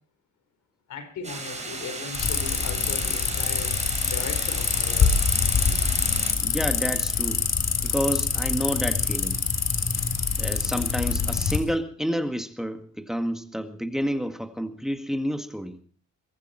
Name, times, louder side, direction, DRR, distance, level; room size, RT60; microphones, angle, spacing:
voice 1, 0.9-3.8 4.0-5.2, left 5 dB, 75° left, 10 dB, 4.5 m, -37 dB
sound 1, 1.2-6.3, right 3 dB, 20° right, 5.8 m, -36 dB
sound 2, 2.1-11.6, left 6 dB, 55° left, 3.7 m, -25 dB
voice 2, 6.4-7.5 7.8-9.4 10.4-15.8, equal, ahead, 8 dB, 1.8 m, -29 dB
22.0 x 14.5 x 4.4 m, 0.43 s
cardioid pair, 90°, 30 cm